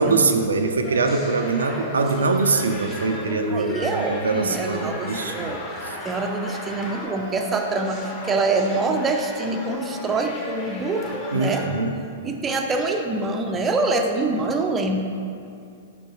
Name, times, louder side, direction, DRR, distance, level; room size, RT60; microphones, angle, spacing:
voice 1, 0.0-5.5 5.8-6.0 11.3-12.0, right 3 dB, 70° right, 5 dB, 0.4 m, -23 dB
sound 1, 0.8-11.7, left 1 dB, 25° left, 1.4 m, -34 dB
voice 2, 3.5-5.6 6.0-11.7 12.2-15.0, right 3 dB, 15° right, 3 dB, 0.6 m, -25 dB
6.0 x 5.4 x 4.5 m, 2.4 s
figure-of-eight pair, 105°, 0 cm